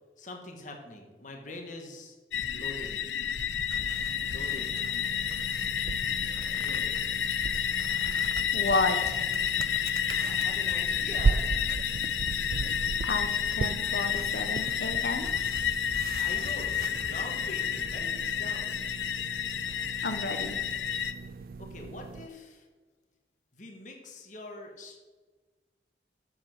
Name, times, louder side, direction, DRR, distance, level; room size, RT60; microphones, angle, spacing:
voice 1, 0.2-2.2 2.5-3.1 4.2-4.9 6.2-7.1 10.3-11.5 16.1-18.8 21.6-22.7 23.5-25.0, left 2 dB, 45° left, 2 dB, 1.6 m, -44 dB
sound 1, 2.3-21.1, left 9 dB, 80° left, 0.5 m, -30 dB
sound 2, 3.7-22.3, right 4 dB, 55° right, 0.3 m, -37 dB
voice 2, 8.5-9.2 13.0-13.3 13.5-15.3 19.7-20.6, left 3 dB, 65° left, 8 dB, 1.0 m, -31 dB
7.7 x 7.2 x 6.0 m, 1.3 s
head